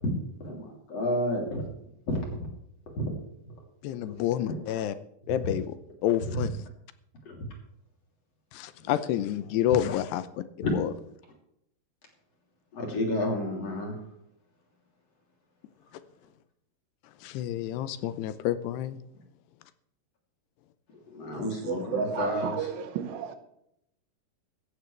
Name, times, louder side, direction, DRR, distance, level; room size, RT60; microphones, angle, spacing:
voice 1, 0.4-1.7 2.1-2.2 3.0-3.1 4.1-4.2 5.4-5.5 7.3-7.4 10.6-10.7 12.7-13.9 21.1-22.7, left 1 dB, 40° left, 3.8 m, -30 dB
voice 2, 3.8-4.9 5.3-5.8 6.0-6.6 8.5-10.9 17.2-19.0, left 12 dB, 80° left, 2.8 m, -29 dB
voice 3, 21.3-23.4, right 7 dB, 80° right, 3.3 m, -33 dB
16.0 x 14.5 x 3.3 m
omnidirectional pair, 4.8 m